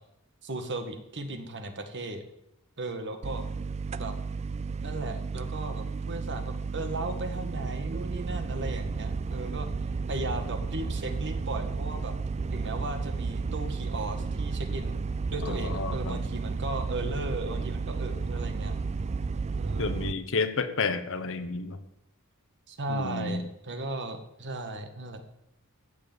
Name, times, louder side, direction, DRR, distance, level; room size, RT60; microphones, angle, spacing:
voice 1, 0.4-2.2 2.8-3.4 4.0-4.1 4.8-9.7 10.1-12.1 12.5-18.8 19.6-20.1 22.7-25.2, right 2 dB, 55° right, 7 dB, 1.8 m, -36 dB
sound 1, 3.2-20.1, right 4 dB, 30° right, 0.4 m, -32 dB
voice 2, 15.4-16.2 19.8-21.8 22.9-23.4, left 4 dB, 65° left, 9 dB, 1.3 m, -31 dB
15.0 x 7.0 x 9.0 m, 0.84 s
head